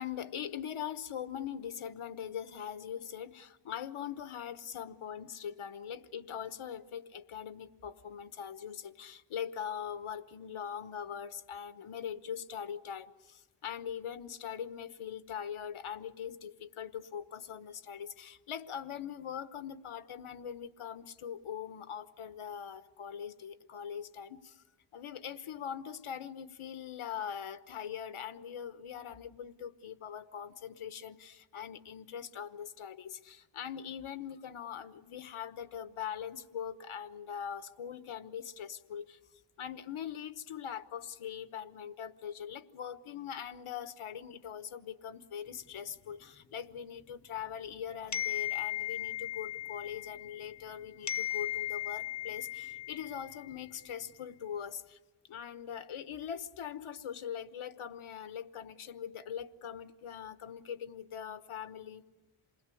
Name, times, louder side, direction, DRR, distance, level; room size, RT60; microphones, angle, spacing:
voice 1, 0.0-24.6 24.9-39.2 39.6-55.0 55.3-62.0, left 8 dB, 85° left, 11 dB, 1.1 m, -42 dB
sound 1, 48.1-50.7 51.1-53.6, left 13 dB, 35° left, 0.8 m, -37 dB
28.0 x 20.5 x 8.4 m, 1.2 s
wide cardioid pair, 145°, 49 cm